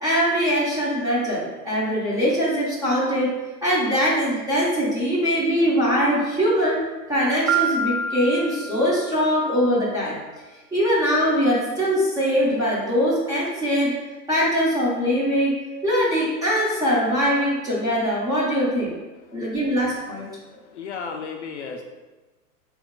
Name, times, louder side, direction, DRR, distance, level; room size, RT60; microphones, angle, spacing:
voice 1, 0.0-3.3 3.6-6.8 7.1-10.2 10.7-13.9 14.3-18.9 19.3-20.3, equal, 10° right, -7 dB, 0.6 m, -22 dB
Piano, 7.5-9.4, right 4 dB, 50° right, 0.6 m, -26 dB
voice 2, 20.5-21.8, left 5 dB, 45° left, 2 dB, 0.4 m, -35 dB
4.2 x 3.1 x 3.6 m, 1.2 s
hypercardioid pair, 130°, 49 cm